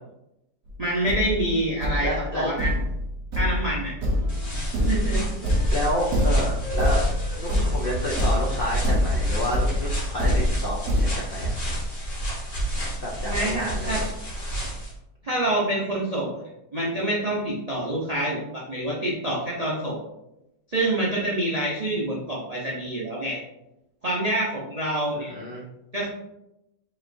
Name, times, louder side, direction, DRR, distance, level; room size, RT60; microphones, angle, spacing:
Thump thud, 0.7-0.8 1.1-11.1, left 1 dB, 65° right, 1.3 m, -26 dB
voice 1, 0.8-2.7 3.4-3.9 4.9-5.3 13.2-14.0 15.2-20.0 20.7-23.4 24.0-25.3 25.9-26.1, right 1 dB, 85° right, -6 dB, 0.3 m, -27 dB
voice 2, 2.0-2.5 5.7-7.0 7.4-11.6 13.0-14.0 25.1-25.7, equal, 80° left, -3 dB, 0.5 m, -30 dB
Wind instrument woodwind instrument, 3.5-6.4 6.6-9.9, left 4 dB, ahead, 1.1 m, -41 dB
sound 1, 4.3-14.9, right 1 dB, 35° left, 1.3 m, -29 dB
5.1 x 3.0 x 2.6 m, 0.89 s
omnidirectional pair, 1.9 m